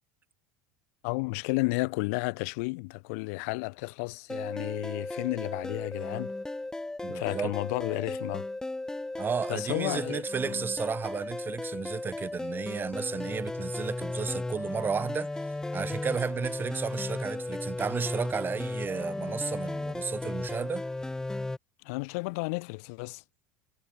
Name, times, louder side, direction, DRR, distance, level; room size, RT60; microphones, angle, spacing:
voice 1, 1.0-6.3 7.1-8.5 9.5-10.6 21.8-23.2, left 29 dB, 70° left, 1.3 m, -32 dB
sound 1, 4.3-21.6, left 2 dB, 5° left, 0.7 m, -35 dB
voice 2, 7.0-7.5 9.2-15.3 15.7-20.8, right 6 dB, 25° right, 1.1 m, -33 dB
supercardioid pair, 105°, 8 cm